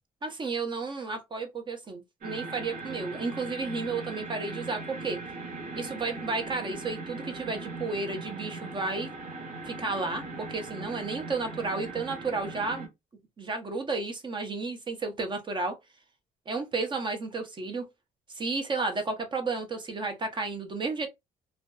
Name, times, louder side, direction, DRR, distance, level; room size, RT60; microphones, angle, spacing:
voice 1, 0.2-5.2 5.7-9.1 9.7-12.9 13.4-15.8 16.5-17.9 18.3-21.1, right 3 dB, 30° right, 0.6 m, -32 dB
sound 1, 2.2-12.9, right 3 dB, 60° right, 1.1 m, -39 dB
2.5 x 2.2 x 2.2 m
cardioid pair, 110°, 17 cm